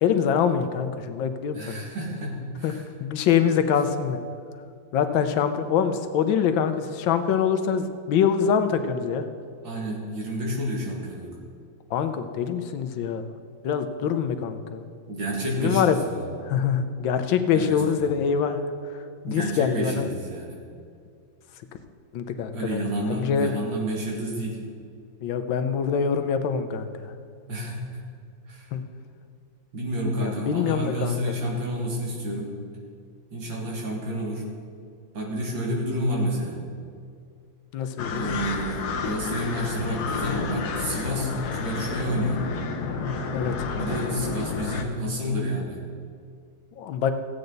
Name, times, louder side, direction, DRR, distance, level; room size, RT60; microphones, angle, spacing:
voice 1, 0.0-1.8 2.6-2.7 3.0-4.2 4.9-9.2 11.9-13.3 13.6-14.8 15.6-16.0 16.4-18.7 19.2-20.1 22.1-23.6 25.2-27.1 28.7-28.8 30.1-31.2 37.7-38.3 43.3-43.7 46.8-47.1, left 7 dB, 80° left, 9 dB, 1.5 m, -24 dB
voice 2, 1.5-2.8 9.6-11.3 15.1-16.2 17.5-18.1 19.3-20.6 22.5-24.6 27.5-28.0 28.5-28.7 29.7-32.5 33.3-34.4 35.1-36.6 38.1-42.4 43.8-45.8, equal, 75° right, -3 dB, 2.7 m, -30 dB
sound 1, 38.0-44.8, left 5 dB, 60° left, 1.2 m, -30 dB
15.5 x 8.7 x 4.0 m, 2.3 s
omnidirectional pair, 2.1 m